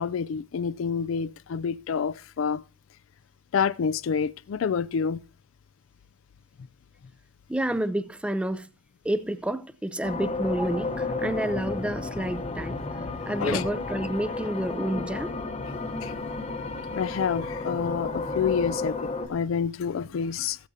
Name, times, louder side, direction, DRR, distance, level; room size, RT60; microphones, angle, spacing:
voice 1, 0.0-2.6 3.5-5.2 13.4-13.7 16.0-16.1 16.9-20.6, left 6 dB, 75° left, 0.4 m, -28 dB
voice 2, 7.5-8.7 9.0-12.8 13.3-15.3, right 1 dB, 5° right, 0.5 m, -29 dB
sound 1, 10.0-19.3, left 3 dB, 35° left, 0.9 m, -32 dB
15.0 x 8.3 x 2.7 m
head